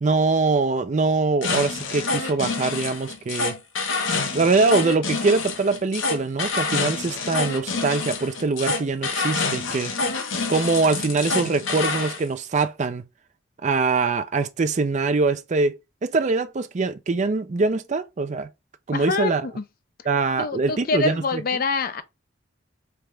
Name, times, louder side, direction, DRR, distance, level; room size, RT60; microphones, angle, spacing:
voice 1, 0.0-3.6 4.3-9.9 10.5-13.0 13.6-18.5 18.9-19.5 20.1-21.6, right 3 dB, 35° right, 0.4 m, -23 dB
sound 1, 1.4-12.2, left 4 dB, 75° left, 0.8 m, -27 dB
voice 2, 18.9-19.6 20.4-22.0, left 4 dB, 45° left, 0.5 m, -25 dB
3.4 x 2.4 x 4.3 m
head